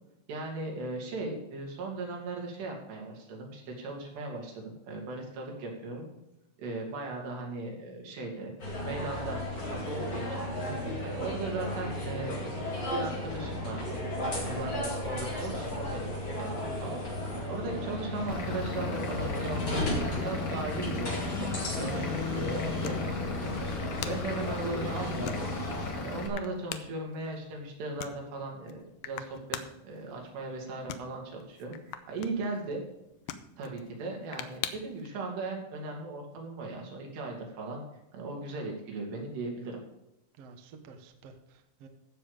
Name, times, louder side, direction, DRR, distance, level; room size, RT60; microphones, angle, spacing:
voice 1, 0.3-6.1 6.6-8.5 8.8-9.4 9.7-10.5 11.0-12.5 12.9-16.6 16.8-17.0 17.3-23.2 23.4-25.4 25.9-32.8 33.6-37.8 38.1-39.8, right 3 dB, 90° right, 0 dB, 4.9 m, -38 dB
sound 1, 8.6-25.9, left 1 dB, 25° left, 4.5 m, -34 dB
voice 2, 10.7-11.0 40.4-41.9, right 4 dB, 65° right, 6 dB, 1.5 m, -48 dB
Vehicle / Engine, 18.3-26.3, left 4 dB, 50° left, 1.8 m, -37 dB
sound 2, 23.5-35.1, left 10 dB, 80° left, 2.4 m, -46 dB
15.0 x 7.0 x 5.1 m, 0.87 s
omnidirectional pair, 4.7 m